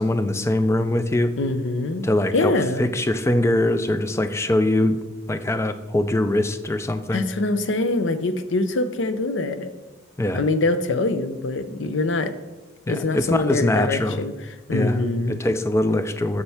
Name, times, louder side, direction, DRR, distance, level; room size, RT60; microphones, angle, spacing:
voice 1, 0.0-1.3 2.0-5.0 5.3-7.2 10.2-10.4 12.9-14.2 14.7-15.0 15.3-16.4, left 1 dB, 15° left, 10 dB, 0.3 m, -22 dB
voice 2, 1.4-2.9 7.1-9.7 10.3-12.3 12.9-14.3 14.7-15.4, left 2 dB, 70° left, 10 dB, 0.5 m, -24 dB
7.1 x 6.7 x 3.4 m, 1.2 s
head